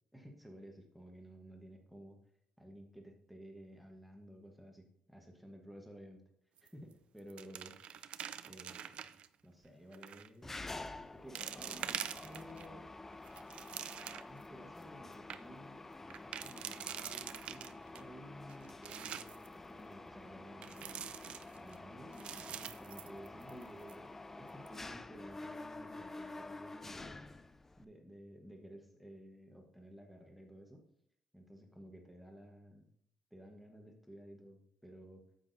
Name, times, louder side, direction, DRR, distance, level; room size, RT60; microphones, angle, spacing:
voice 1, 0.1-2.2 2.6-6.2 6.6-8.1 8.4-9.1 9.4-10.6 11.1-12.9 14.0-15.9 16.2-21.1 21.5-27.2 27.8-30.8 31.3-32.9 33.3-35.2, equal, ahead, 1 dB, 1.2 m, -54 dB
sound 1, 6.6-6.9 7.2-9.3 9.9-10.3 10.9-11.0 11.4-12.7 13.1-14.4 14.8-14.9 15.1-15.4 16.1-18.0 18.5-19.5 20.6-21.8 22.1-23.6 23.9-24.0 24.5-24.8, right 9 dB, 60° right, 0.4 m, -45 dB
Mechanisms, 10.4-27.8, left 2 dB, 15° left, 0.3 m, -49 dB
9.8 x 8.1 x 2.7 m, 0.70 s
cardioid pair, 140°, 2 cm